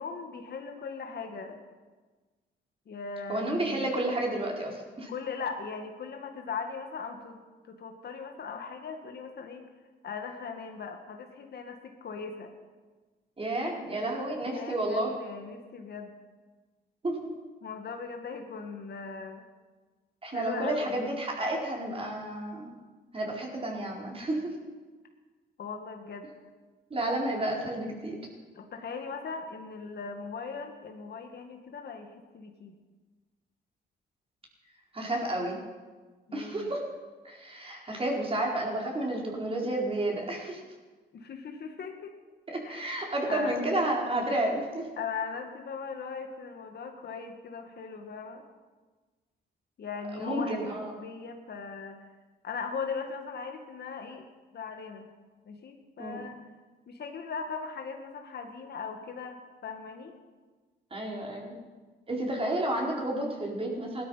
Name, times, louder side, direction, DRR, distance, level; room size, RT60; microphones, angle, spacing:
voice 1, 0.0-1.6 2.9-3.9 5.1-7.4 7.7-9.6 10.0-12.5 14.1-16.1 17.6-19.5 20.3-21.0 25.6-26.3 28.5-32.8 36.3-36.7 41.1-42.1 42.6-43.6 45.0-48.4 49.8-52.0 52.4-54.2 54.5-55.1 55.4-56.4 56.9-60.1, left 5 dB, 55° left, 4 dB, 1.9 m, -39 dB
voice 2, 3.3-5.1 13.4-15.1 17.0-17.3 20.2-22.6 23.1-24.5 26.9-28.2 34.9-35.6 36.3-36.8 37.2-40.6 42.5-44.9 50.2-50.9 56.0-56.2 60.9-61.5 62.1-64.0, right 1 dB, 30° right, -1 dB, 4.4 m, -31 dB
17.0 x 12.5 x 5.8 m, 1.3 s
cardioid pair, 90°, 20 cm